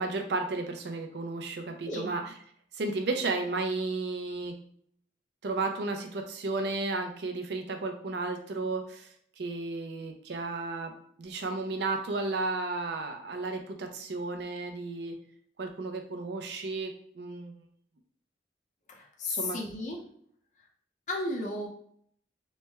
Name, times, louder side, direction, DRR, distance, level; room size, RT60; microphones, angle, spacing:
voice 1, 0.0-2.3 2.7-4.5 5.4-9.1 9.4-15.2 15.6-17.5 19.3-19.6, right 3 dB, 65° right, 4 dB, 0.5 m, -33 dB
voice 2, 18.9-20.0 21.1-21.7, left 2 dB, 40° left, 0 dB, 0.6 m, -34 dB
3.2 x 2.1 x 3.3 m, 0.63 s
head